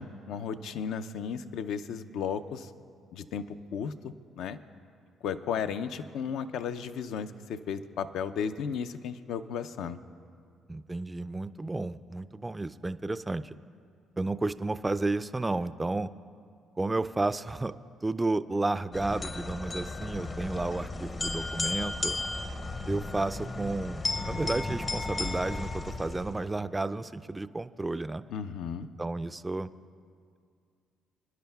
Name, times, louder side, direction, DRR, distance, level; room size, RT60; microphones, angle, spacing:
voice 1, 0.0-2.7 3.1-3.4 3.7-4.6 5.2-10.0 28.3-28.9, left 7 dB, 75° left, 10 dB, 0.4 m, -34 dB
voice 2, 10.7-13.5 14.2-16.1 16.8-17.7 18.0-22.2 22.9-28.2 29.0-29.7, right 2 dB, 20° right, 13 dB, 0.3 m, -32 dB
sound 1, 18.9-26.4, left 2 dB, 35° left, 0.6 m, -34 dB
26.0 x 10.5 x 2.3 m, 2.2 s
supercardioid pair, 75°, 0 cm